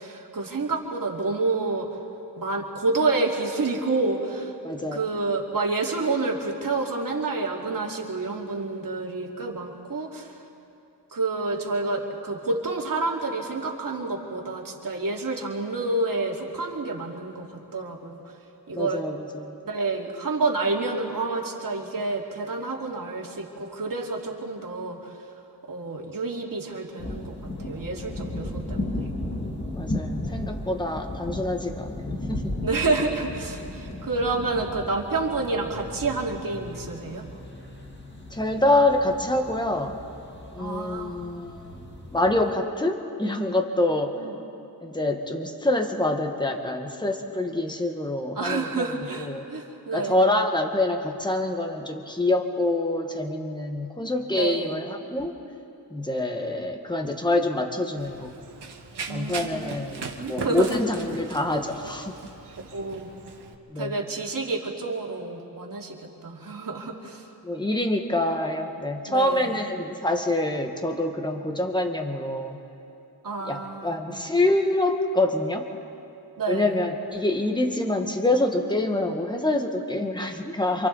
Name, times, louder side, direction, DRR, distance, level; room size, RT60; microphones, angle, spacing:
voice 1, 0.0-1.9 2.4-4.5 4.9-10.3 11.1-18.2 18.7-19.0 19.6-25.0 25.7-29.1 32.6-37.2 40.6-41.2 43.9-44.3 48.3-50.2 54.4-54.7 59.1-59.6 60.2-60.8 62.7-63.1 63.8-67.2 69.1-69.6 73.2-74.3 76.4-76.7, right 3 dB, 55° right, -1 dB, 2.7 m, -29 dB
voice 2, 4.6-5.1 18.7-19.5 29.7-32.5 33.9-34.0 38.3-39.9 40.5-41.8 42.1-44.2 44.8-48.9 49.2-49.5 49.9-55.4 55.9-58.3 59.1-62.2 63.7-64.0 67.4-72.6 73.4-75.7 76.5-80.9, left 1 dB, 10° left, 3 dB, 1.5 m, -26 dB
sound 1, 27.0-42.5, left 1 dB, 25° left, 2.0 m, -35 dB
Run, 58.0-63.5, right 4 dB, 80° right, 1.6 m, -39 dB
28.0 x 26.0 x 4.1 m, 2.7 s
wide cardioid pair, 155°, 40 cm